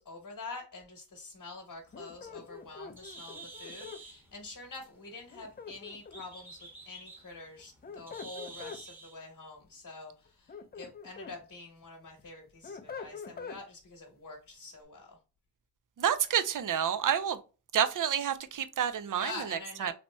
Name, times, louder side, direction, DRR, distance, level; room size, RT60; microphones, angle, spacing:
voice 1, 0.0-15.2 19.1-19.9, left 3 dB, 45° left, 1.1 m, -46 dB
sound 1, 1.9-4.0 5.3-6.4 7.6-8.8 10.3-11.4 11.8-13.6, left 5 dB, 25° left, 0.4 m, -45 dB
Bird, 1.9-9.2, right 3 dB, 5° right, 0.9 m, -50 dB
voice 2, 16.0-17.4 17.7-19.3 19.8-19.9, right 8 dB, 50° right, 0.5 m, -28 dB
2.9 x 2.8 x 2.2 m
cardioid pair, 50°, 42 cm